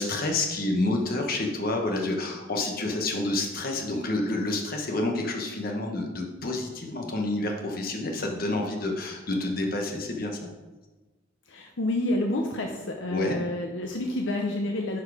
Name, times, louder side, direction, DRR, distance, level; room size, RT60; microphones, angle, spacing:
voice 1, 0.0-10.4 13.1-13.4, left 2 dB, 45° left, 2 dB, 1.3 m, -28 dB
voice 2, 11.5-15.0, left 1 dB, 70° left, 2 dB, 0.7 m, -29 dB
10.5 x 4.7 x 4.9 m, 1.2 s
head